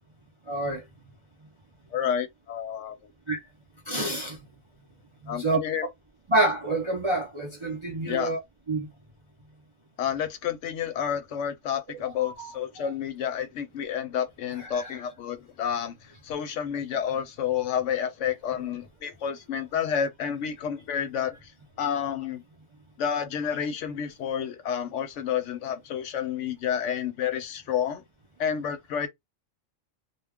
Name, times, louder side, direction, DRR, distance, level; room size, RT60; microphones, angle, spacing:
voice 1, 0.5-0.8 3.3-3.4 3.9-4.4 5.2-5.6 6.3-8.4 8.7-8.9 11.9-12.9 14.5-15.0, right 2 dB, 40° right, 0.4 m, -28 dB
voice 2, 1.9-3.0 5.3-5.9 8.1-8.3 10.0-16.0 16.2-21.5 21.8-22.4 23.0-28.0 28.4-29.1, left 8 dB, 70° left, 0.9 m, -30 dB
2.3 x 2.2 x 3.4 m
omnidirectional pair, 1.4 m